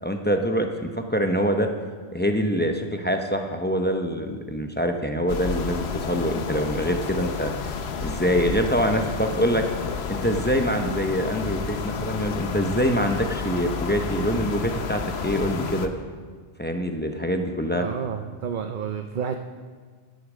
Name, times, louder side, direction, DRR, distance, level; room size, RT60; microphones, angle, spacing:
voice 1, 0.0-1.7 2.1-7.5 8.0-9.6 10.1-15.9 16.6-17.9, equal, 10° left, 4 dB, 0.7 m, -25 dB
sound 1, 5.3-15.9, left 5 dB, 70° left, 1.0 m, -31 dB
voice 2, 17.7-19.4, right 7 dB, 55° right, 6 dB, 0.7 m, -30 dB
12.0 x 8.1 x 6.3 m, 1.5 s
omnidirectional pair, 1.2 m